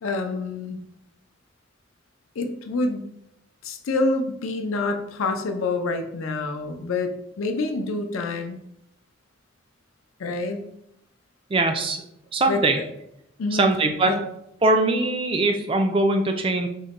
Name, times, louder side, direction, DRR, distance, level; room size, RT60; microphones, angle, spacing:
voice 1, 0.0-0.8 2.4-3.1 3.6-8.6 10.2-10.7 12.5-12.8 13.4-13.8 14.0-14.2, left 3 dB, 85° left, 6 dB, 0.5 m, -27 dB
voice 2, 11.5-12.0 12.3-12.8 13.5-14.1 14.6-16.7, right 2 dB, 25° right, 5 dB, 0.3 m, -21 dB
3.7 x 2.1 x 4.0 m, 0.79 s
head